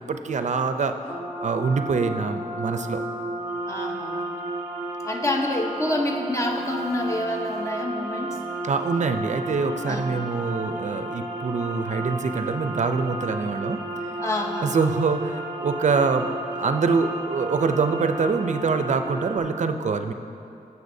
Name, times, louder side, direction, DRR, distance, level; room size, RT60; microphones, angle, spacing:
voice 1, 0.1-0.9 1.4-3.0 8.6-13.8 14.6-20.1, right 4 dB, 55° right, 8 dB, 0.5 m, -25 dB
sound 1, 1.1-19.4, right 1 dB, 15° right, 1.2 m, -33 dB
voice 2, 3.7-4.3 5.0-8.4 9.9-10.2 14.2-14.7, left 1 dB, 20° left, 2 dB, 0.8 m, -27 dB
15.5 x 6.9 x 2.7 m, 2.7 s
wide cardioid pair, 130°, 14 cm